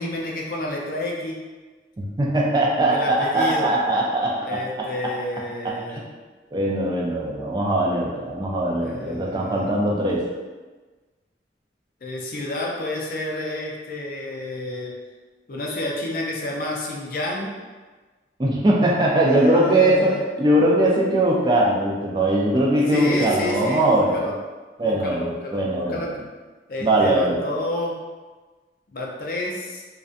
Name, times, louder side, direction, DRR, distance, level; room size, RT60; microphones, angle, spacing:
voice 1, 0.0-1.4 2.9-3.7 4.4-6.0 8.8-10.1 12.0-14.9 15.5-17.5 19.3-20.2 22.8-24.3 24.8-26.2 26.7-28.0 28.9-29.8, left 1 dB, 50° left, -2 dB, 0.4 m, -29 dB
voice 2, 2.2-5.1 5.6-6.0 6.5-10.2 18.4-24.3 24.8-26.2 26.8-27.5, right 1 dB, 25° right, -3 dB, 0.3 m, -21 dB
2.5 x 2.2 x 2.5 m, 1.3 s
head